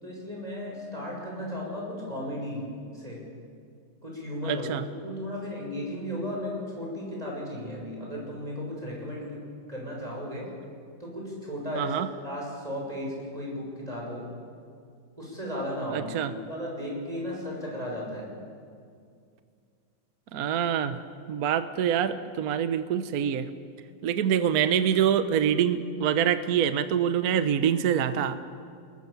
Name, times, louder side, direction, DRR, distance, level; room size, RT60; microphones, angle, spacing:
voice 1, 0.0-2.7 2.9-3.2 4.0-4.7 5.0-10.5 11.0-12.0 12.2-14.3 15.2-18.3, left 1 dB, 20° right, -2 dB, 7.1 m, -35 dB
voice 2, 4.4-4.8 11.8-12.1 15.9-16.3 20.3-21.0 21.3-23.5 24.0-28.4, right 9 dB, 55° right, 11 dB, 1.2 m, -25 dB
29.0 x 20.5 x 7.1 m, 2.3 s
omnidirectional pair, 2.1 m